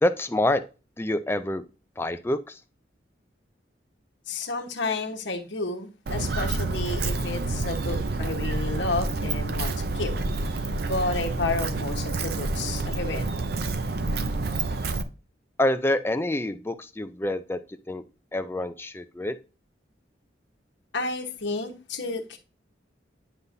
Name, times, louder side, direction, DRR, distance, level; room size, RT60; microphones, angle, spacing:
voice 1, 0.0-0.6 1.0-1.6 2.0-2.4 15.6-17.6 17.9-18.0 18.3-19.3, left 1 dB, 15° left, 0.4 m, -26 dB
voice 2, 4.3-10.1 10.8-13.3 20.9-22.4, left 3 dB, 75° left, 1.2 m, -31 dB
Walk footsteps, 6.1-15.0, right 3 dB, 55° right, 0.6 m, -28 dB
10.0 x 5.4 x 2.7 m
head